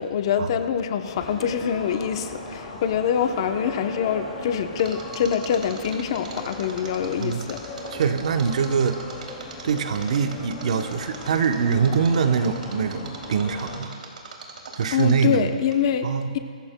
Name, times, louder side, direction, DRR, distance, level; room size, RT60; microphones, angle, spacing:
voice 1, 0.0-7.6 14.9-16.1, left 8 dB, 35° left, 7 dB, 0.8 m, -25 dB
sound 1, 1.1-13.8, left 2 dB, 10° left, 2.3 m, -38 dB
Mechanisms, 4.8-15.4 15.7-15.8, right 5 dB, 75° right, 2.8 m, -40 dB
voice 2, 7.9-9.0 9.6-13.9 14.8-15.5 16.0-16.3, right 6 dB, 55° right, 8 dB, 0.9 m, -23 dB
23.0 x 15.0 x 2.2 m, 2.3 s
hypercardioid pair, 170°, 4 cm